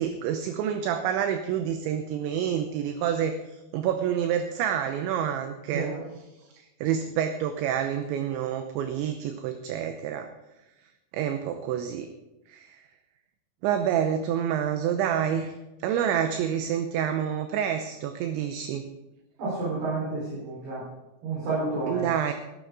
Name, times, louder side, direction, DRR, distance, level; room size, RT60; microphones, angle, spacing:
voice 1, 0.0-5.9 6.5-10.3 11.1-12.1 12.5-12.8 13.6-15.5 15.8-18.8 21.9-22.3, right 9 dB, 80° right, 7 dB, 2.8 m, -28 dB
voice 2, 5.7-6.0 19.4-20.8 21.2-22.0, right 3 dB, 55° right, -7 dB, 6.5 m, -30 dB
16.5 x 12.5 x 4.0 m, 1.0 s
omnidirectional pair, 5.8 m